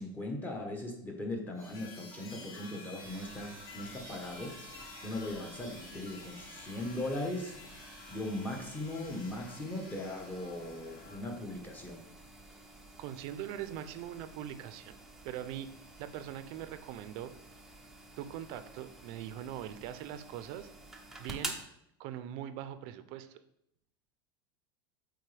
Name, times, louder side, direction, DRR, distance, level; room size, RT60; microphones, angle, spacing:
voice 1, 0.0-4.6 5.0-7.6 8.1-12.0, left 1 dB, 15° left, 1 dB, 1.2 m, -39 dB
sound 1, 1.5-11.2, left 2 dB, 70° left, 2.6 m, -50 dB
sound 2, 3.0-21.6, right 2 dB, 5° right, 0.7 m, -50 dB
voice 2, 13.0-15.0 15.2-15.7 16.0-17.3 18.2-20.7 21.2-21.6 22.0-23.4, right 11 dB, 50° right, 11 dB, 0.6 m, -41 dB
8.2 x 4.0 x 3.4 m, 0.78 s
supercardioid pair, 145°, 12 cm